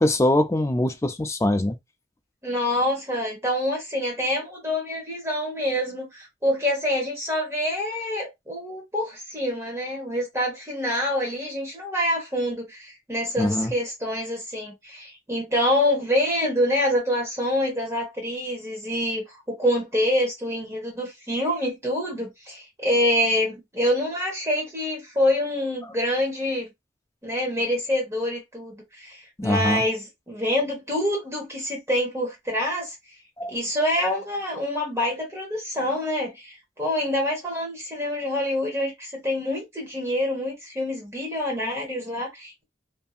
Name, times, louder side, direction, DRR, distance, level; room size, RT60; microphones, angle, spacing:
voice 1, 0.0-1.8 13.4-13.7 29.4-29.8 33.4-33.5, left 1 dB, 15° left, 0.3 m, -22 dB
voice 2, 2.4-26.7 27.2-32.9 33.5-42.6, left 1 dB, 15° right, 1.0 m, -26 dB
2.7 x 2.6 x 2.4 m
head